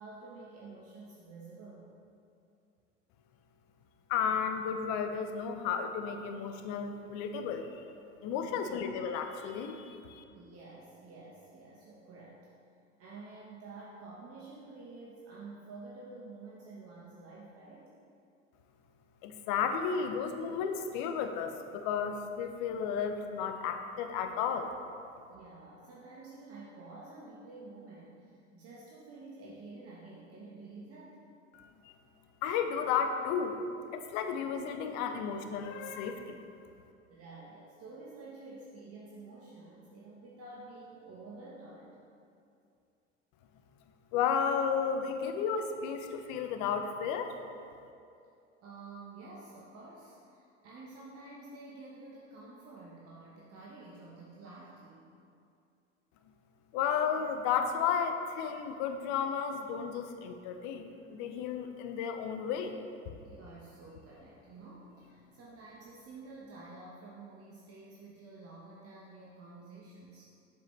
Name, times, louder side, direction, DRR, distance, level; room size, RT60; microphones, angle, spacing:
voice 1, 0.0-1.9 8.4-8.9 10.3-12.4 13.0-17.9 25.3-31.2 37.1-42.0 48.6-55.1 63.2-70.3, right 3 dB, 40° right, -5 dB, 1.1 m, -50 dB
voice 2, 4.1-7.8 8.2-10.2 19.2-24.7 31.5-31.9 32.4-33.6 33.9-36.4 44.1-47.3 56.7-62.8, left 7 dB, 50° left, 7 dB, 0.8 m, -33 dB
7.3 x 7.2 x 3.3 m, 2.5 s
figure-of-eight pair, 70°, 38 cm